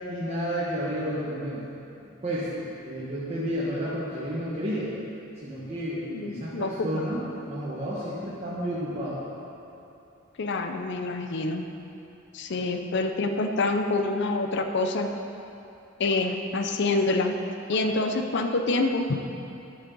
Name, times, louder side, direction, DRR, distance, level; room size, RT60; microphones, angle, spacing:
voice 1, 0.1-1.6 2.2-4.9 5.4-9.2, equal, 35° right, -9 dB, 1.4 m, -31 dB
voice 2, 6.1-7.2 10.4-11.7 12.3-15.1 16.0-17.3 17.7-19.2, left 2 dB, 60° left, 5 dB, 0.6 m, -27 dB
10.5 x 8.2 x 4.0 m, 2.8 s
head